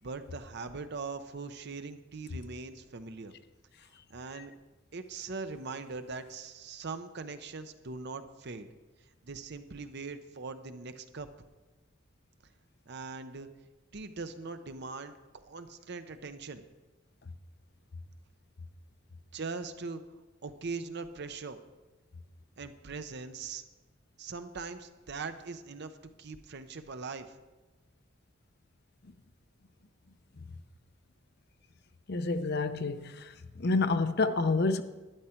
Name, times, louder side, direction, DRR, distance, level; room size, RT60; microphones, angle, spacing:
voice 1, 0.0-3.3 4.1-4.5 4.9-8.7 9.2-11.3 12.9-13.5 13.9-15.2 15.4-16.6 19.3-20.0 20.4-21.6 22.6-23.6 24.2-27.4, right 4 dB, 60° right, 0.8 m, -41 dB
voice 2, 32.1-33.3 33.6-34.8, left 3 dB, 55° left, 0.7 m, -28 dB
12.5 x 10.5 x 4.5 m
head